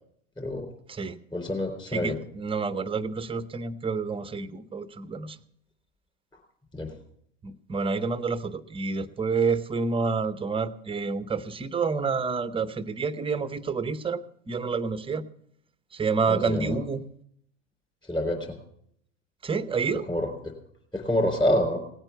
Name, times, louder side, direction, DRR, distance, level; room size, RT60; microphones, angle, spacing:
voice 1, 0.4-0.7 1.3-2.2 6.7-6.9 16.3-16.7 18.1-18.5 20.1-20.5 20.9-21.8, left 1 dB, 10° left, 3 dB, 4.1 m, -27 dB
voice 2, 0.9-1.2 1.9-5.4 7.4-15.2 15.9-17.0 19.4-20.1, right 4 dB, 15° right, 15 dB, 0.8 m, -29 dB
18.0 x 8.9 x 6.9 m, 0.68 s
hypercardioid pair, 95°, 37 cm